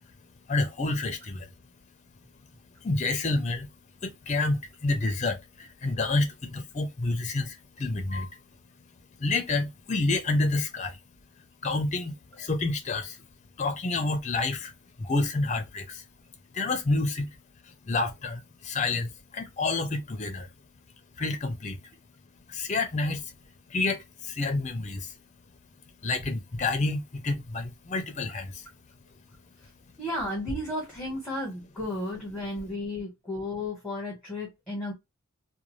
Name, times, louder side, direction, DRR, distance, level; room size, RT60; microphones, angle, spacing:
voice 1, 0.5-1.5 2.8-8.4 8.8-8.9 9.2-11.0 11.4-13.3 13.6-16.0 16.5-17.4 17.6-20.5 21.1-21.9 22.5-23.3 23.7-25.2 25.9-28.7 29.0-29.3, left 3 dB, 35° left, 0.6 m, -29 dB
voice 2, 30.0-34.9, left 1 dB, 5° left, 1.3 m, -33 dB
2.5 x 2.3 x 3.1 m
head